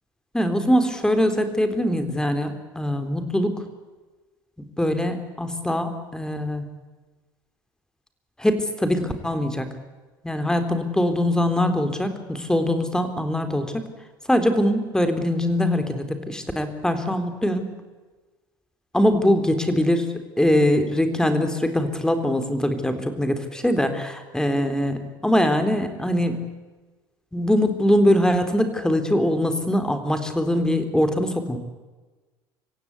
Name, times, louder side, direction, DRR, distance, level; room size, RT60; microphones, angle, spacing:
voice 1, 0.3-3.6 4.8-6.7 8.4-9.7 10.2-13.8 14.3-17.7 18.9-26.4 27.3-31.6, left 1 dB, 5° left, 8 dB, 3.9 m, -22 dB
26.5 x 16.0 x 8.5 m, 1.3 s
hypercardioid pair, 70°, 11 cm